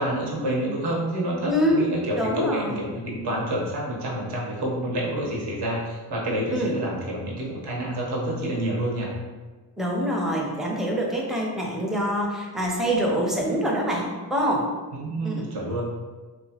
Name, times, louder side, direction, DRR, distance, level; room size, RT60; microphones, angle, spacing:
voice 1, 0.0-9.1 14.9-15.8, right 1 dB, 65° right, -3 dB, 0.9 m, -28 dB
voice 2, 1.4-1.9 2.1-2.8 6.5-6.8 9.8-14.7 15.2-15.5, equal, ahead, -2 dB, 0.5 m, -25 dB
2.9 x 2.3 x 2.8 m, 1.3 s
cardioid pair, 80°, 43 cm